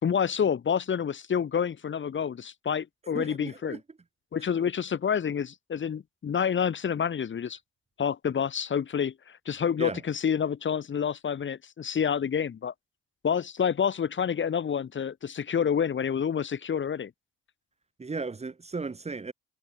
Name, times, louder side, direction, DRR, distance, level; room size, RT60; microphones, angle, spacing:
voice 1, 0.0-3.8 4.3-7.6 8.0-12.7 13.2-17.1, left 7 dB, 40° left, 1.7 m, -28 dB
voice 2, 3.1-3.8 9.8-10.0 18.0-19.3, right 4 dB, 20° right, 1.5 m, -35 dB
cardioid pair, 85°, 29 cm